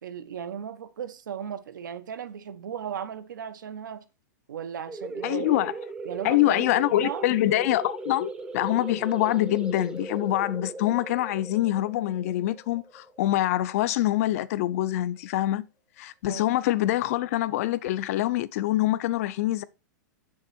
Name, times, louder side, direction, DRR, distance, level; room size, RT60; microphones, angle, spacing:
voice 1, 0.0-4.0 4.5-5.6 6.0-6.7 7.0-7.3 16.3-16.4, right 8 dB, 85° right, 1.0 m, -36 dB
sound 1, 4.9-14.2, right 3 dB, 10° right, 0.6 m, -38 dB
voice 2, 5.2-5.7 6.2-15.7 16.0-19.6, left 15 dB, 50° left, 0.5 m, -25 dB
6.3 x 6.0 x 4.3 m
hypercardioid pair, 150°, 10 cm